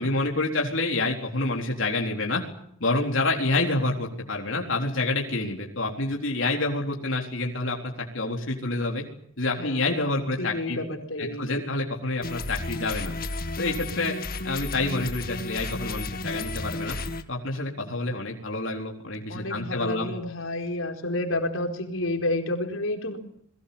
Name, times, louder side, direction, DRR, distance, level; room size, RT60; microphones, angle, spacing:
voice 1, 0.0-2.4 2.8-9.0 9.4-10.8 11.2-13.1 13.6-14.1 14.4-17.0 17.3-20.1, left 2 dB, 65° left, 1 dB, 4.0 m, -28 dB
voice 2, 9.6-11.7 17.8-18.0 19.3-23.2, left 1 dB, 85° left, 4 dB, 4.3 m, -30 dB
sound 1, 12.2-17.2, left 2 dB, 45° left, 2.0 m, -33 dB
29.0 x 22.0 x 7.1 m, 0.69 s
head